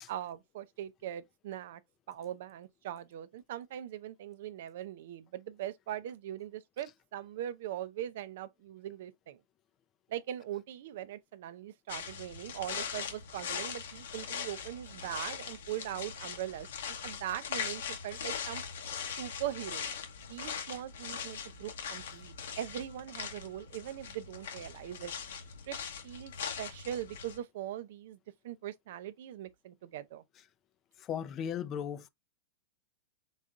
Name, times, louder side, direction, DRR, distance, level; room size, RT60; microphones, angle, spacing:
voice 1, 0.1-1.8 2.1-9.4 10.1-18.6 19.2-19.9 20.3-25.1 25.7-25.8 26.0-26.3 26.6-28.2 28.4-30.2, right 11 dB, 65° right, 0.5 m, -41 dB
sound 1, 11.9-27.4, left 7 dB, 80° left, 1.0 m, -41 dB
voice 2, 31.0-32.1, left 8 dB, 30° left, 0.5 m, -36 dB
4.0 x 3.7 x 2.4 m
hypercardioid pair, 130°, 0 cm